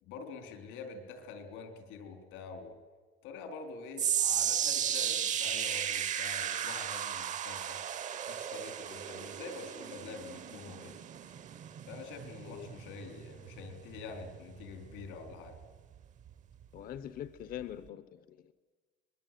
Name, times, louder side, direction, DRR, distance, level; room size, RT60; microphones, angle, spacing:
voice 1, 0.0-2.8 3.2-7.8 8.3-11.0 11.9-15.6, left 4 dB, 85° left, 7 dB, 4.1 m, -46 dB
sound 1, 4.0-16.3 16.6-17.0 17.6-17.7, right 9 dB, 40° right, 0.9 m, -35 dB
voice 2, 16.7-18.5, left 10 dB, 50° left, 13 dB, 0.9 m, -43 dB
24.0 x 20.5 x 9.2 m, 1.4 s
cardioid pair, 150°, 19 cm